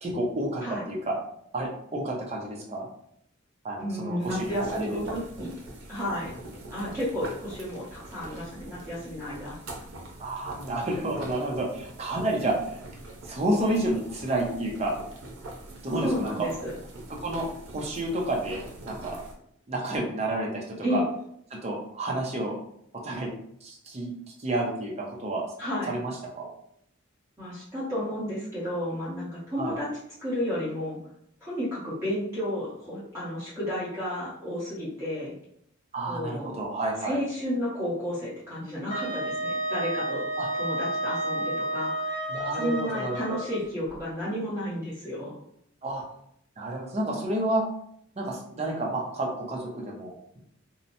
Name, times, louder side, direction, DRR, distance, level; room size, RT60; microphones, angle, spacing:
voice 1, 0.0-1.2 1.5-2.9 3.6-5.0 10.2-12.8 13.2-14.9 15.8-16.3 17.2-19.2 19.7-21.0 21.5-22.6 23.0-23.3 23.6-24.1 24.4-25.5 25.9-26.5 29.6-29.8 35.9-37.2 40.4-40.5 42.3-43.4 45.8-46.0 46.6-47.6 48.2-50.4, right 1 dB, 30° right, -2 dB, 0.6 m, -30 dB
voice 2, 3.8-5.5 5.9-6.3 6.7-9.5 16.0-16.7 20.8-21.0 25.6-25.9 27.4-29.9 30.2-31.0 31.4-35.3 36.0-36.5 37.0-40.2 40.5-45.4, equal, 15° right, -10 dB, 0.9 m, -32 dB
sound 1, 4.2-19.3, right 1 dB, 90° right, 0.6 m, -43 dB
Wind instrument woodwind instrument, 38.9-43.6, right 1 dB, 40° left, 0.5 m, -31 dB
2.8 x 2.0 x 2.6 m, 0.70 s
head